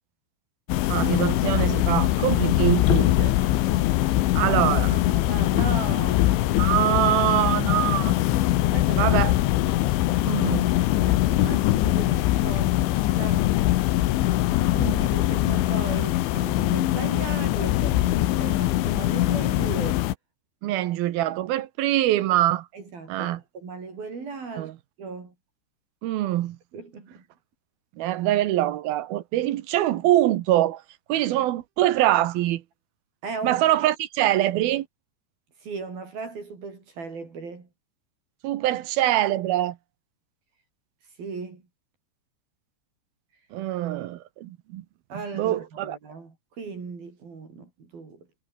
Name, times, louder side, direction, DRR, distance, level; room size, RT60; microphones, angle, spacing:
sound 1, 0.7-20.1, left 15 dB, 80° left, 3.6 m, -22 dB
voice 1, 0.9-3.4 4.4-4.9 6.6-8.2 9.0-9.3 10.3-10.7 20.6-22.7 23.1-23.4 24.6-24.7 26.0-26.6 28.0-30.8 31.1-32.6 33.4-34.9 38.4-39.8 43.5-44.8 45.3-46.0, right 14 dB, 70° right, 2.5 m, -24 dB
voice 2, 4.9-6.3 8.7-9.2 11.1-13.5 14.6-20.0 20.7-20.8 22.7-24.7 25.0-25.3 26.7-27.2 33.2-33.6 35.6-37.7 41.2-41.6 45.1-48.3, right 4 dB, 50° right, 7.0 m, -37 dB
omnidirectional pair, 5.4 m